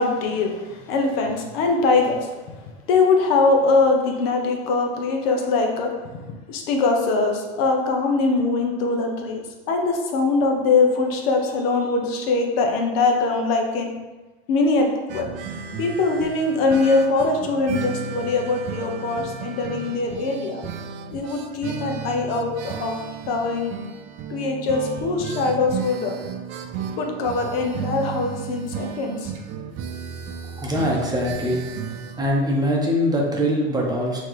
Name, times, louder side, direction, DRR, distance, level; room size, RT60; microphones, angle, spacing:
voice 1, 0.0-2.6 2.9-13.9 14.5-15.3 15.8-20.6 21.1-22.9 23.3-23.8 24.3-26.1 27.0-29.3, left 3 dB, 70° left, 2 dB, 0.9 m, -22 dB
sound 1, 15.1-32.3, right 7 dB, 40° right, 0.4 m, -34 dB
voice 2, 30.6-31.6 32.2-34.2, equal, 15° right, -2 dB, 0.7 m, -22 dB
5.7 x 2.9 x 3.2 m, 1.2 s
supercardioid pair, 125°, 31 cm